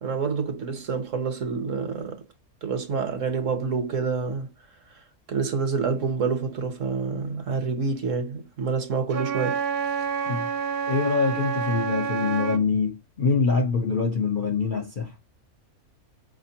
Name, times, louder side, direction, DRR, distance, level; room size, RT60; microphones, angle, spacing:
voice 1, 0.0-2.2 2.6-4.5 5.3-9.6, right 5 dB, 60° right, 1.2 m, -27 dB
Wind instrument woodwind instrument, 9.1-12.7, right 6 dB, 85° right, 1.1 m, -28 dB
voice 2, 10.9-15.1, left 4 dB, 50° left, 0.6 m, -24 dB
5.0 x 2.9 x 2.8 m
omnidirectional pair, 1.6 m